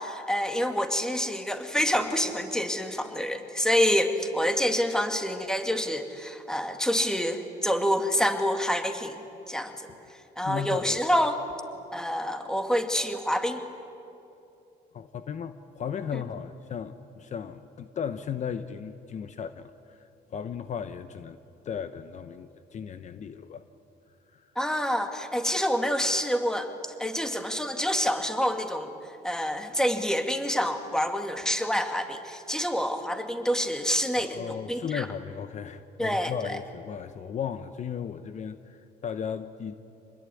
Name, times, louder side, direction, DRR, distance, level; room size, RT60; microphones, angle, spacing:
voice 1, 0.0-9.2 9.5-9.9 10.4-11.4 11.9-13.6 16.1-16.2 24.6-26.7 27.0-28.9 29.2-35.1 36.0-36.6, equal, 5° left, 6 dB, 2.3 m, -27 dB
voice 2, 10.4-11.0 14.9-20.0 20.3-21.4 21.6-23.7 24.3-24.5 34.1-39.7, left 7 dB, 45° left, 11 dB, 0.9 m, -36 dB
26.5 x 20.5 x 9.8 m, 2.7 s
cardioid pair, 110°, 17 cm